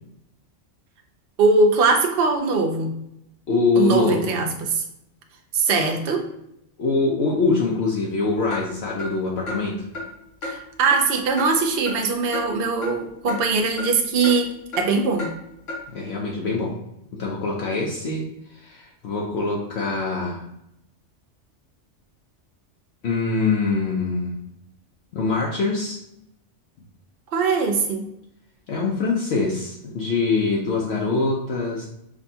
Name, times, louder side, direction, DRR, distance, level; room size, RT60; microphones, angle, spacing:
voice 1, 1.4-3.0 3.8-4.8 5.5-6.2 10.4-15.3 27.3-28.1, right 4 dB, 55° right, 3 dB, 0.8 m, -21 dB
voice 2, 3.5-4.4 6.8-9.9 15.9-16.8 17.2-20.4 23.0-24.4 25.1-26.0 28.7-31.9, left 4 dB, 65° left, -3 dB, 0.8 m, -24 dB
Clock, 8.5-8.6 9.0-9.1 9.5-9.6 9.9-10.1 10.4-10.5 10.9-11.0 11.4-11.5 11.9-12.0 12.3-12.5 12.8-12.9 13.3-13.4 13.8-13.9 14.2-14.4 14.7-14.8 15.2-15.3 15.7-15.8, left 2 dB, 90° left, 1.6 m, -30 dB
6.0 x 2.3 x 2.7 m, 0.80 s
omnidirectional pair, 1.3 m